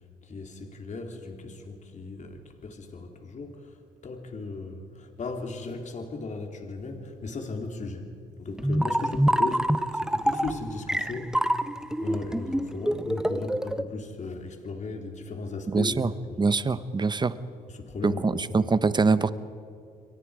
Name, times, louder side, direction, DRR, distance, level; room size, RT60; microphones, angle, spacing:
voice 1, 0.2-8.1 8.4-11.7 12.0-16.5 17.7-18.7, left 3 dB, 45° left, 3 dB, 3.4 m, -36 dB
sound 1, 8.6-13.8, right 1 dB, 5° right, 0.9 m, -26 dB
voice 2, 15.7-16.1 16.4-17.3 18.0-19.3, right 4 dB, 25° right, 14 dB, 1.0 m, -24 dB
29.0 x 23.0 x 5.0 m, 2.4 s
cardioid pair, 75°, 17 cm